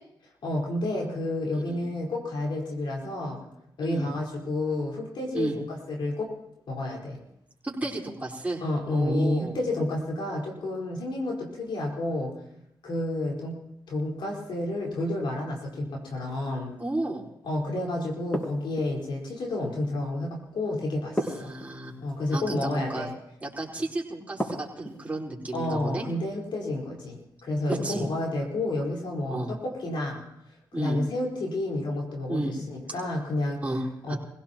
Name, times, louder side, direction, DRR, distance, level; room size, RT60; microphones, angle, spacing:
voice 1, 0.4-3.4 3.8-6.3 6.7-7.2 8.6-12.3 12.8-16.7 17.4-21.5 22.0-23.1 25.5-30.2 30.7-34.1, left 2 dB, 80° left, -1 dB, 4.4 m, -30 dB
voice 2, 1.5-1.8 3.8-4.1 5.3-5.6 7.6-8.6 8.9-9.5 16.8-17.3 21.2-21.9 22.3-23.1 23.4-26.0 27.7-28.0 29.3-29.5 30.7-31.0 32.3-32.6 33.6-34.1, right 2 dB, 20° right, -4 dB, 4.5 m, -32 dB
sound 1, 18.3-19.1 21.2-22.2 24.4-25.1 27.7-28.3, equal, 20° left, 5.5 m, -33 dB
25.0 x 17.0 x 3.0 m, 0.80 s
cardioid pair, 65°, 8 cm